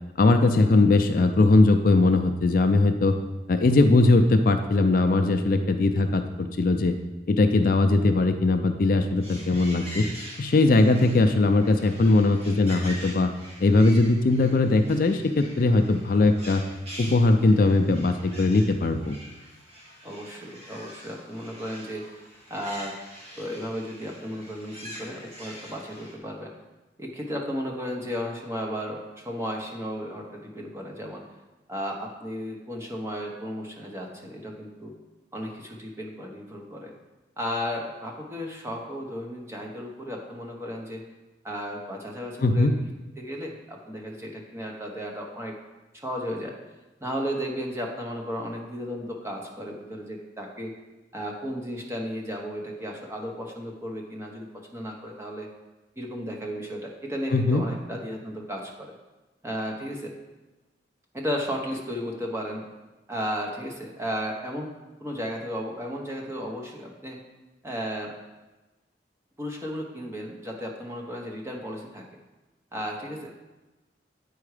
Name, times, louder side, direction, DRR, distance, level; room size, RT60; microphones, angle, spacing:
voice 1, 0.2-3.2 3.5-7.0 7.3-10.1 10.4-13.3 13.6-16.6 17.0-19.2 42.4-42.7 57.3-57.6, left 2 dB, 50° left, 7 dB, 0.4 m, -20 dB
sound 1, 9.2-26.2, equal, 35° right, 1.8 m, -44 dB
voice 2, 20.0-22.0 22.5-22.9 23.3-26.5 27.0-31.2 31.7-34.9 35.3-36.9 37.4-41.1 41.4-42.9 43.2-45.6 45.9-46.6 47.0-50.7 51.1-54.5 54.7-55.5 56.0-58.9 59.4-60.1 61.1-62.7 63.1-64.7 65.0-67.2 67.6-68.1 69.4-72.2 72.7-73.4, equal, 15° right, 0 dB, 0.9 m, -34 dB
8.5 x 4.7 x 4.9 m, 1.1 s
head